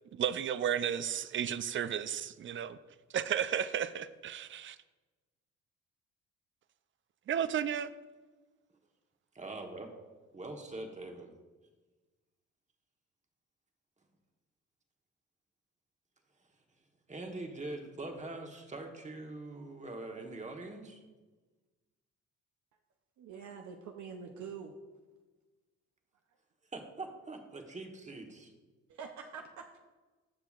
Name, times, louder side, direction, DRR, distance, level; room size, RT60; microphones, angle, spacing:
voice 1, 0.1-2.8 3.1-4.8 7.3-7.9, right 9 dB, 40° right, 0.4 m, -33 dB
voice 2, 9.3-9.9 10.3-11.3 17.1-21.0 26.7-28.5, right 2 dB, 25° right, 1.2 m, -43 dB
voice 3, 23.2-24.7 28.9-29.8, right 6 dB, 70° right, 0.7 m, -45 dB
14.5 x 5.8 x 2.4 m
cardioid pair, 90°, 30 cm